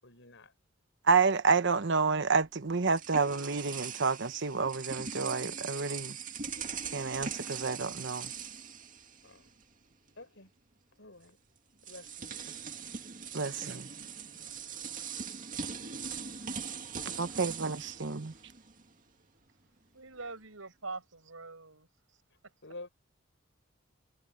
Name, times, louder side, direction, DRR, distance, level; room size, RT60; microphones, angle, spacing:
voice 1, 0.0-0.5 9.2-9.5 10.2-10.5 11.0-11.4 11.8-12.3 12.6-12.7 13.4-13.6 14.2-14.6 22.6-22.9, left 2 dB, 60° left, 6.6 m, -50 dB
voice 2, 1.0-6.2 6.9-8.3 13.3-13.9 17.1-18.3, right 4 dB, 60° right, 1.0 m, -29 dB
sound 1, 2.4-9.6 9.9-10.1 11.2-11.3 11.8-18.9, right 6 dB, 40° right, 2.2 m, -41 dB
voice 3, 19.9-21.9 22.4-22.5, right 3 dB, 80° right, 6.6 m, -43 dB
head